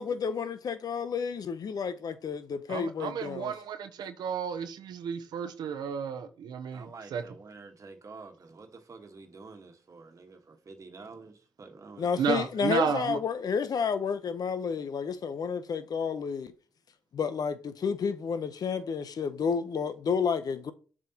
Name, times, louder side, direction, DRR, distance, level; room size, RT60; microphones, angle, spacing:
voice 1, 0.0-3.5 12.0-16.5 17.1-20.7, left 6 dB, 65° left, 0.7 m, -31 dB
voice 2, 2.7-7.2 12.2-13.2, right 7 dB, 80° right, 0.7 m, -32 dB
voice 3, 6.7-12.3, right 4 dB, 50° right, 1.4 m, -48 dB
7.5 x 5.0 x 2.9 m
cardioid pair, 55°, 7 cm